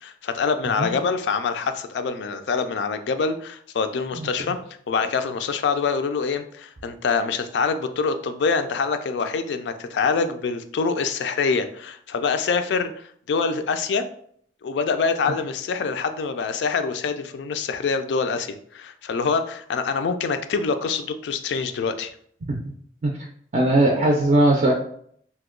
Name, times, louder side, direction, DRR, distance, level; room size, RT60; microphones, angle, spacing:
voice 1, 0.0-4.6 4.9-14.0 14.6-22.1, left 5 dB, 70° left, 9 dB, 0.3 m, -25 dB
voice 2, 23.5-24.7, right 1 dB, 40° right, -1 dB, 0.4 m, -19 dB
2.8 x 2.1 x 3.6 m, 0.63 s
head